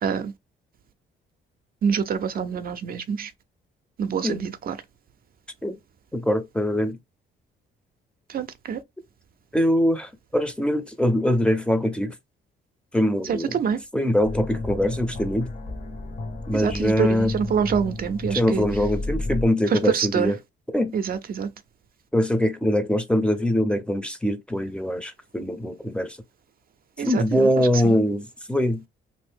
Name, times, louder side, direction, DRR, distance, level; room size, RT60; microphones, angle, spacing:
voice 1, 0.0-0.3 1.8-3.3 4.0-4.8 8.3-8.8 13.2-13.8 16.5-18.7 19.7-20.3 20.9-21.5 27.0-28.0, right 7 dB, 50° right, 0.5 m, -26 dB
voice 2, 6.1-7.0 9.5-12.2 12.9-13.6 13.9-15.5 16.5-17.3 18.3-20.4 20.7-20.9 22.1-26.2 27.0-28.8, left 1 dB, 5° left, 0.6 m, -23 dB
sound 1, 14.2-19.4, left 2 dB, 40° left, 1.1 m, -32 dB
2.6 x 2.6 x 3.5 m
cardioid pair, 90°, 20 cm